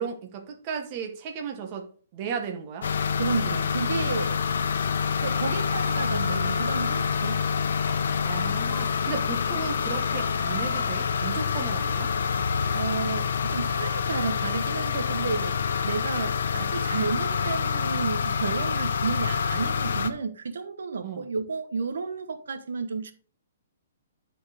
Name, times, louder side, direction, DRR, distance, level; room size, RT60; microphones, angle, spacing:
voice 1, 0.0-2.9 8.2-12.1 21.0-21.3, right 6 dB, 25° right, 1.1 m, -35 dB
sound 1, 2.8-20.1, left 6 dB, 70° left, 0.9 m, -27 dB
voice 2, 3.2-4.4 5.2-7.4 12.7-15.6 15.8-23.1, right 4 dB, 85° right, 1.1 m, -31 dB
10.5 x 4.4 x 4.9 m
hypercardioid pair, 170°, 0 cm